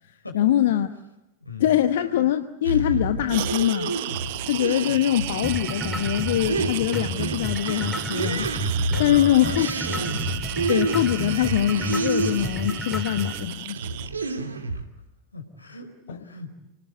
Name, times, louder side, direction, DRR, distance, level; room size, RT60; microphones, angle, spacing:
voice 1, 0.3-0.9 1.6-3.9 4.5-8.5 9.0-10.3 10.7-13.8, left 12 dB, 55° left, 9 dB, 1.1 m, -23 dB
voice 2, 1.4-1.8 8.9-9.6 10.6-10.8 14.7-14.9 15.3-16.5, left 3 dB, 80° left, 4 dB, 4.7 m, -38 dB
sound 1, 2.6-12.8 13.3-14.8, right 3 dB, 75° right, 2.3 m, -30 dB
sound 2, 3.3-14.1, right 17 dB, 50° right, 0.9 m, -34 dB
sound 3, 5.4-13.4, left 1 dB, ahead, 4.1 m, -32 dB
29.5 x 19.5 x 9.5 m, 0.97 s
figure-of-eight pair, 90°, 0 cm